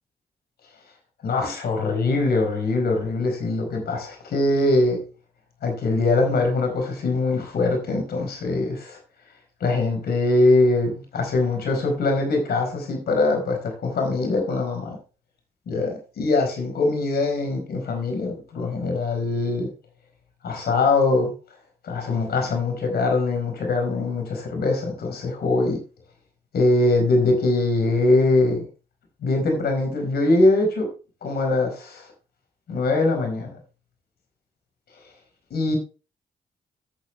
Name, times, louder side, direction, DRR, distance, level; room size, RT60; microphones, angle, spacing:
voice 1, 1.2-5.0 5.6-9.0 9.6-15.0 15.7-19.7 20.4-21.3 21.8-25.8 26.5-28.7 29.2-30.9 31.2-32.1 32.7-33.5 35.5-35.8, left 2 dB, 75° left, 4.6 m, -22 dB
12.5 x 7.6 x 3.3 m
cardioid pair, 55°, 16 cm